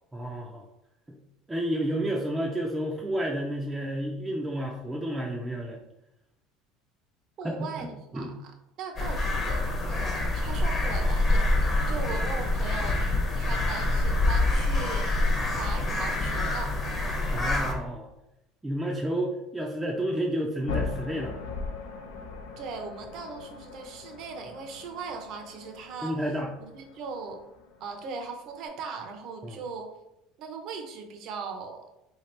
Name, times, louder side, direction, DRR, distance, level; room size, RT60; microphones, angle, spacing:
voice 1, 0.1-0.6 1.1-1.2 1.5-5.8 7.4-7.9 8.1-8.3 17.3-18.1 18.6-21.4 26.0-26.5 29.4-29.6, right 1 dB, 10° right, -2 dB, 0.4 m, -30 dB
voice 2, 7.4-8.5 8.8-15.3 15.6-16.7 22.6-26.3 26.6-27.4 27.8-29.9 30.4-31.9, right 4 dB, 50° right, 4 dB, 0.6 m, -39 dB
sound 1, 9.0-17.7, left 2 dB, 25° left, 0.7 m, -26 dB
sound 2, 20.7-28.7, left 4 dB, 85° left, 0.6 m, -39 dB
3.5 x 2.8 x 3.2 m, 0.89 s
cardioid pair, 145°, 0 cm